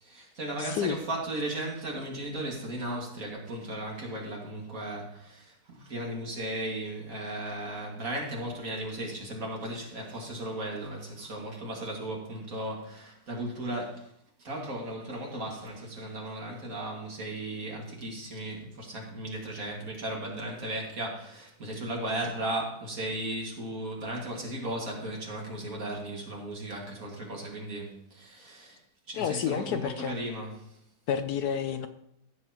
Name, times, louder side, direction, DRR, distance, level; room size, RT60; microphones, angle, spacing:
voice 1, 0.0-14.1 14.4-28.8 29.1-30.8, right 1 dB, 50° right, -1 dB, 2.4 m, -36 dB
voice 2, 0.6-1.0 29.1-30.1 31.1-31.9, left 8 dB, 70° left, 9 dB, 1.0 m, -30 dB
14.5 x 7.8 x 3.0 m, 0.73 s
omnidirectional pair, 1.9 m